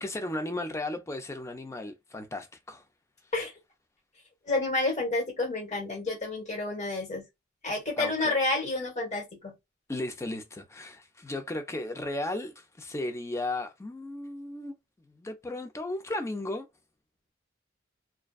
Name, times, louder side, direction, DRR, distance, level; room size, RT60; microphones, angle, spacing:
voice 1, 0.0-2.8 8.0-8.4 9.9-14.7 15.1-16.7, left 2 dB, 15° left, 0.4 m, -35 dB
voice 2, 4.4-7.3 7.6-9.6, left 2 dB, 35° left, 1.2 m, -29 dB
2.4 x 2.2 x 2.3 m
head